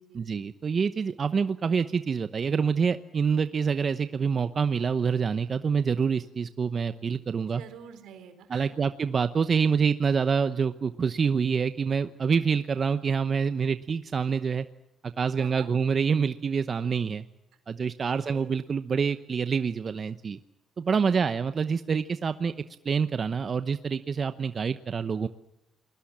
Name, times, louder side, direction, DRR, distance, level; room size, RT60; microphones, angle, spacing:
voice 1, 0.1-7.6 8.5-14.7 15.0-17.2 17.7-20.4 20.8-22.5 22.8-25.3, right 6 dB, 45° right, 11 dB, 0.9 m, -26 dB
voice 2, 7.5-8.8 15.4-15.7 18.3-18.5 21.1-21.2, right 8 dB, 85° right, 9 dB, 4.0 m, -47 dB
28.5 x 21.0 x 7.5 m, 0.90 s
cardioid pair, 90°, 0 cm